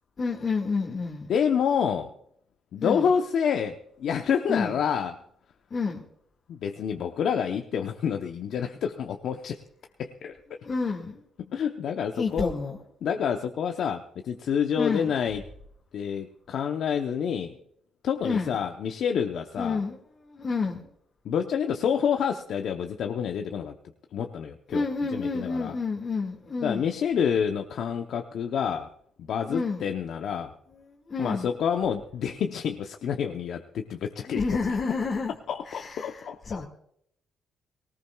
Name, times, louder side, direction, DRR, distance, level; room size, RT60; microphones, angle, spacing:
voice 1, 0.2-1.3 2.8-3.1 4.5-4.8 5.7-6.1 10.6-11.2 12.1-12.8 14.8-15.1 18.2-18.6 19.6-20.9 24.7-26.8 29.5-29.8 30.7-31.5 34.3-35.3 35.7-36.7, left 4 dB, 40° left, -1 dB, 1.9 m, -29 dB
voice 2, 1.3-2.1 2.7-5.2 6.5-9.6 10.0-10.4 11.4-12.5 13.0-15.4 15.9-17.6 18.0-19.8 21.2-23.7 24.1-24.9 25.1-25.8 26.6-28.9 29.2-30.5 31.2-34.4 35.5-36.6, left 7 dB, 70° left, 4 dB, 0.8 m, -28 dB
19.5 x 18.5 x 2.3 m, 0.71 s
cardioid pair, 90°, 0 cm